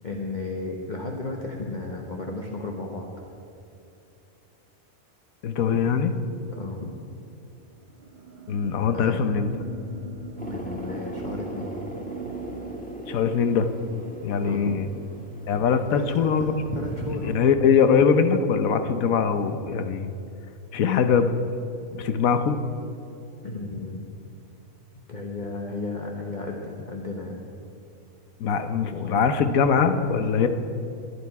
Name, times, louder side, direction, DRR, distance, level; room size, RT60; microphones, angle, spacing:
voice 1, 0.0-3.1 6.5-6.9 8.9-9.2 10.4-11.8 14.4-14.8 15.9-17.4 23.4-24.1 25.1-27.4 28.9-29.3 30.1-30.5, left 3 dB, 35° left, 0 dB, 1.1 m, -34 dB
voice 2, 5.4-6.1 8.5-9.5 13.1-13.7 14.2-14.8 15.5-16.5 17.3-20.1 20.7-21.4 21.9-22.6 28.4-30.5, left 6 dB, 85° left, 9 dB, 1.2 m, -22 dB
sound 1, 7.5-12.7, right 6 dB, 45° right, 0.8 m, -41 dB
sound 2, 10.4-17.3, equal, 5° left, 1.4 m, -37 dB
22.5 x 8.5 x 4.7 m, 2.7 s
omnidirectional pair, 1.4 m